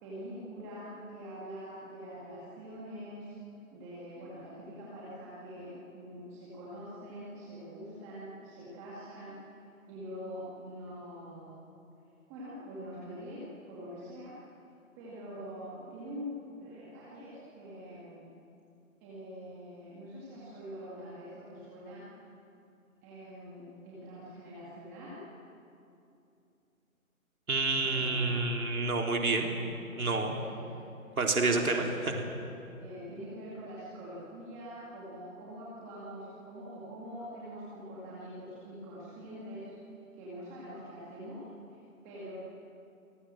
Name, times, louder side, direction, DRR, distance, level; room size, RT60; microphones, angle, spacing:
voice 1, 0.0-3.4 3.7-9.4 9.9-11.6 12.3-14.3 15.0-18.3 19.0-22.0 23.0-25.2 27.8-28.4 30.3-30.8 31.1-31.2 31.4-32.2 32.8-39.7 40.1-41.4 41.7-42.3, equal, 10° right, -8 dB, 2.2 m, -44 dB
voice 2, 27.5-29.5 30.0-30.4 31.2-32.1, right 3 dB, 90° right, 1 dB, 4.1 m, -28 dB
28.5 x 19.5 x 7.6 m, 2.7 s
hypercardioid pair, 170°, 42 cm